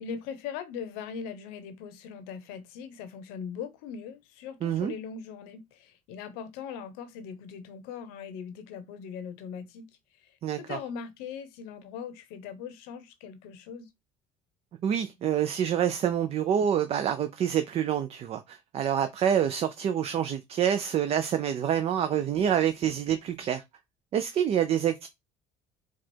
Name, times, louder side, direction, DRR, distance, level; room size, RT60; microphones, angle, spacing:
voice 1, 0.0-9.9 10.2-13.9, left 7 dB, 85° left, 0.9 m, -40 dB
voice 2, 4.6-4.9 10.4-10.8 14.8-23.6 24.1-25.1, right 9 dB, 40° right, 0.5 m, -27 dB
4.7 x 2.4 x 4.3 m
cardioid pair, 125°, 16 cm